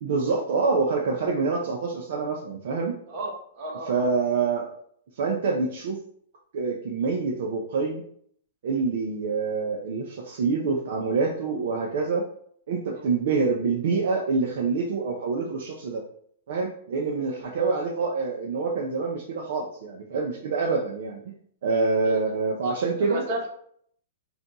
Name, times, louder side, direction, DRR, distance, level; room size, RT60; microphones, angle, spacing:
voice 1, 0.0-2.9 3.9-4.7 5.2-6.0 6.5-8.0 8.6-12.3 12.7-16.0 16.5-21.2 21.6-23.2, right 4 dB, 65° right, -1 dB, 0.5 m, -26 dB
voice 2, 3.1-4.1 13.0-13.1 22.0-22.3 23.1-23.5, right 1 dB, 45° right, 0 dB, 1.0 m, -33 dB
2.6 x 2.3 x 3.9 m, 0.64 s
hypercardioid pair, 140°, 0 cm